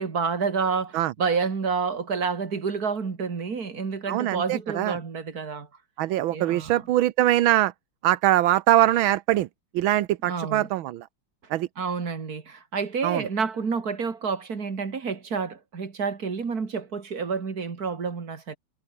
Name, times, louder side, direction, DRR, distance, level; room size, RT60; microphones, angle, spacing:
voice 1, 0.0-5.7 6.3-6.9 10.2-10.7 11.8-18.6, right 5 dB, 50° right, 2.9 m, -29 dB
voice 2, 4.1-5.0 6.0-7.7 8.0-9.5 9.7-11.1 11.5-11.7 13.0-13.3, right 14 dB, 85° right, 1.6 m, -22 dB
omnidirectional pair, 2.2 m